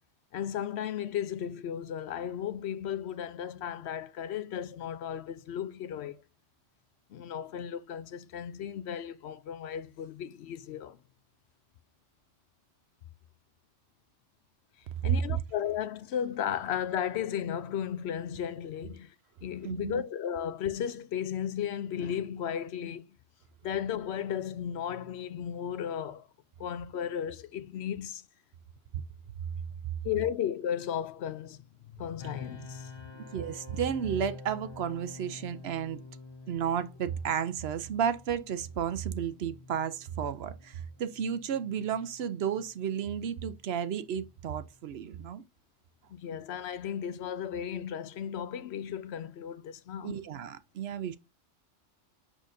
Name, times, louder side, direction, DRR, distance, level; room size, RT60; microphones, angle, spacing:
voice 1, 0.3-6.2 7.1-11.0 15.0-19.1 19.4-23.0 23.6-26.3 26.6-28.2 30.0-31.6 31.9-33.3 46.1-50.2, left 9 dB, 70° left, 0.8 m, -35 dB
voice 2, 19.6-20.0 28.9-29.0 33.3-36.0 36.5-45.4 50.0-51.2, right 8 dB, 65° right, 0.8 m, -32 dB
sound 1, 32.2-45.0, left 3 dB, 35° left, 0.5 m, -49 dB
6.5 x 6.2 x 2.6 m
omnidirectional pair, 1.2 m